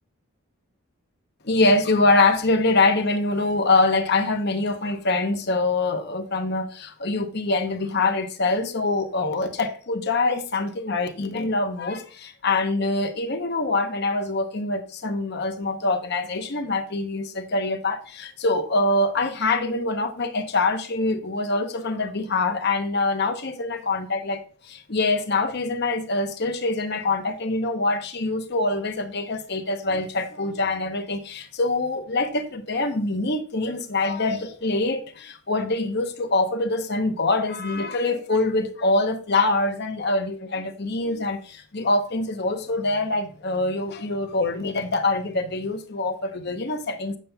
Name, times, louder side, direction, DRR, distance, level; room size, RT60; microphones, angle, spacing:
voice 1, 1.4-24.4 24.7-47.2, left 2 dB, 50° left, 0.8 m, -24 dB
8.2 x 7.2 x 2.2 m
head